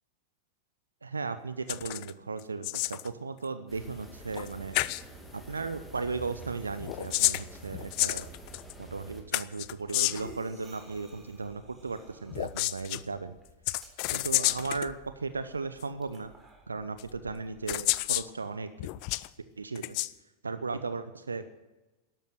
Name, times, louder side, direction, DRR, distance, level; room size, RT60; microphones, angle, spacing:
voice 1, 1.0-4.8 5.3-8.3 8.8-13.4 14.1-16.3 16.7-18.7 19.6-20.0 20.4-21.4, right 4 dB, 75° right, 12 dB, 0.7 m, -36 dB
sound 1, 1.7-2.1 2.4-3.1 4.4-4.5 4.7-5.0 6.8-8.7 9.3-10.3 12.3-13.0 13.7-14.9 15.8-15.9 17.0-17.1 17.7-18.3 18.8-19.3 19.8-20.1, left 22 dB, 45° left, 0.5 m, -30 dB
sound 2, 3.7-9.2, right 2 dB, 5° left, 2.8 m, -47 dB
sound 3, 9.6-18.3, right 2 dB, 15° right, 4.1 m, -55 dB
12.5 x 12.5 x 7.9 m, 1.1 s
figure-of-eight pair, 90°, 0 cm